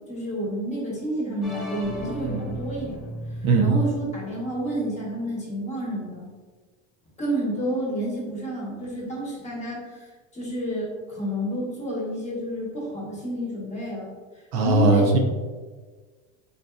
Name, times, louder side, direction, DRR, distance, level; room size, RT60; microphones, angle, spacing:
voice 1, 0.1-3.0 3.4-6.3 7.2-14.1 14.6-15.1, right 1 dB, 15° left, -4 dB, 1.0 m, -30 dB
sound 1, 1.4-5.2, right 1 dB, ahead, 0.3 m, -36 dB
voice 2, 14.5-15.2, right 3 dB, 60° right, 2 dB, 0.7 m, -19 dB
4.1 x 4.0 x 2.3 m, 1.4 s
cardioid pair, 160°, 40 cm